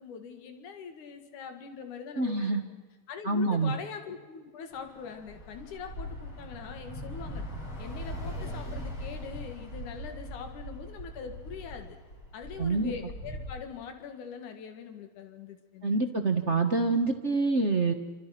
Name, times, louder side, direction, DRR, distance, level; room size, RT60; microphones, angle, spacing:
voice 1, 0.0-2.6 3.1-7.4 7.8-12.0 12.3-16.2, left 6 dB, 75° left, 6 dB, 3.5 m, -43 dB
voice 2, 2.2-2.6 3.2-3.8 12.6-12.9 15.8-17.9, right 3 dB, 60° right, 5 dB, 0.7 m, -26 dB
Bus / Traffic noise roadway noise, 4.7-13.5, equal, 40° left, 7.2 m, -40 dB
29.0 x 25.5 x 5.9 m, 1.3 s
omnidirectional pair, 3.6 m